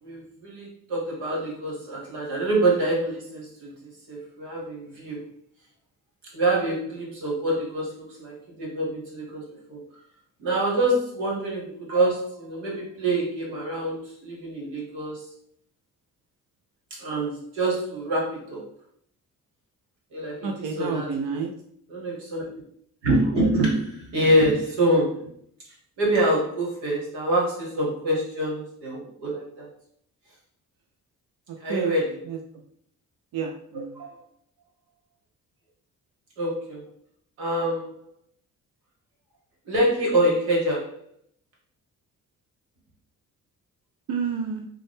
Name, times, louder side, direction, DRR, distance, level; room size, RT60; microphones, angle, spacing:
voice 1, 0.0-5.2 6.3-9.8 10.4-15.2 16.9-18.6 20.1-21.4 21.9-22.4 23.0-25.3 26.0-29.7 31.6-32.2 33.9-34.1 36.4-36.8 37.4-38.0 39.6-41.0, right 1 dB, 85° right, -4 dB, 1.4 m, -26 dB
voice 2, 20.4-21.5 31.7-32.0 32.3-32.4 33.3-34.0 44.1-44.7, right 6 dB, 60° right, 3 dB, 0.6 m, -29 dB
3.7 x 2.2 x 3.5 m, 0.66 s
hypercardioid pair, 45°, 39 cm